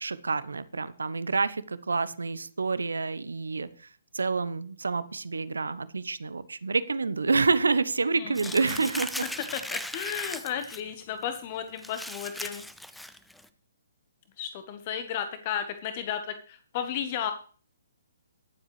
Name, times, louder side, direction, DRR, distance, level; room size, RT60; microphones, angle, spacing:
voice 1, 0.0-3.9 4.1-9.2, right 4 dB, 75° right, 16 dB, 0.9 m, -28 dB
voice 2, 8.2-8.9 9.5-12.6 14.4-17.3, left 9 dB, 40° left, 8 dB, 1.2 m, -34 dB
Crumpling crinkling, 8.3-10.8 11.2-11.4 11.8-13.4, left 1 dB, ahead, 0.7 m, -38 dB
22.0 x 7.4 x 3.3 m, 0.42 s
figure-of-eight pair, 130°, 0 cm